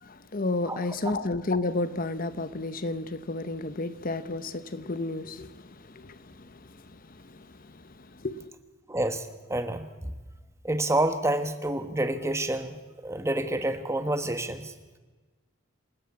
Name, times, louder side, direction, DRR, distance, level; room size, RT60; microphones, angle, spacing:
voice 1, 0.0-8.5, left 2 dB, 40° left, 0.8 m, -32 dB
voice 2, 8.9-10.1 10.6-14.7, right 1 dB, 15° right, 1.2 m, -28 dB
27.0 x 13.0 x 8.5 m
head